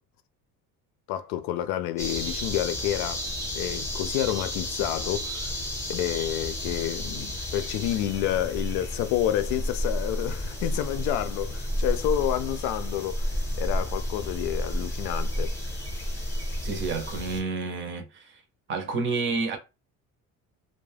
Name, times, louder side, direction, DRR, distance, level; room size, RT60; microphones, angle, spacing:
voice 1, 1.1-3.2 3.5-5.6 5.9-15.5, left 12 dB, 85° left, 0.5 m, -29 dB
sound 1, 2.0-17.4, equal, 10° left, 0.6 m, -31 dB
voice 2, 16.6-18.4 18.7-19.6, right 4 dB, 35° right, 0.5 m, -30 dB
2.3 x 2.1 x 3.2 m
cardioid pair, 165°, 33 cm